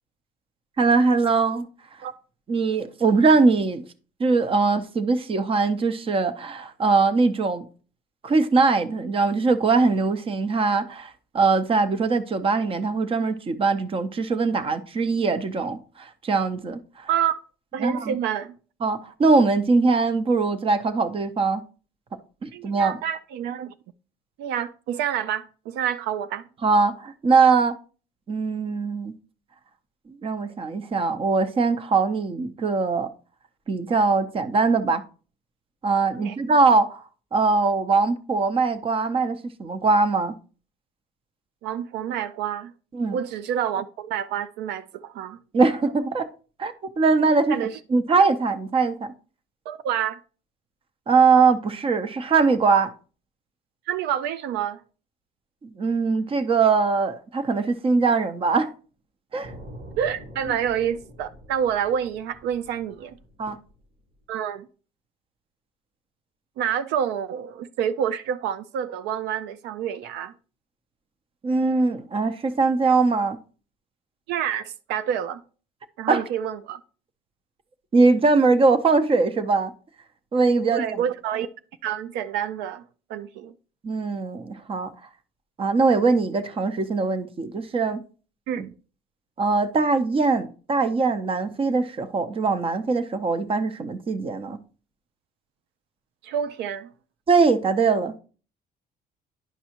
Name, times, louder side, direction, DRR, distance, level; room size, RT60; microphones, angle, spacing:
voice 1, 0.8-1.7 2.5-3.8 4.2-7.6 8.2-17.1 17.8-18.2 18.8-21.6 22.4-23.0 26.6-27.7 28.3-29.1 30.2-33.1 33.7-35.0 35.8-37.0 37.3-40.3 42.9-43.2 45.5-46.3 46.6-47.6 47.9-49.1 51.1-52.9 55.6-58.7 59.3-59.5 63.4-63.6 71.4-73.4 76.1-76.2 77.9-79.7 80.3-80.8 83.8-84.9 85.6-88.0 89.4-94.6 97.3-98.1, right 4 dB, 35° right, 0.7 m, -21 dB
voice 2, 17.7-18.6 22.5-23.7 24.4-26.5 36.2-36.4 41.6-42.7 43.1-45.4 47.5-47.8 49.7-50.2 53.9-54.8 60.0-63.2 64.3-64.7 66.6-70.3 74.3-75.4 76.0-76.8 80.7-81.5 81.8-82.8 83.1-83.5 88.5-88.7 96.2-96.9, right 9 dB, 85° right, 0.4 m, -28 dB
sound 1, 59.4-64.2, equal, 60° right, 1.6 m, -45 dB
10.0 x 5.4 x 2.9 m
cardioid pair, 110°, 17 cm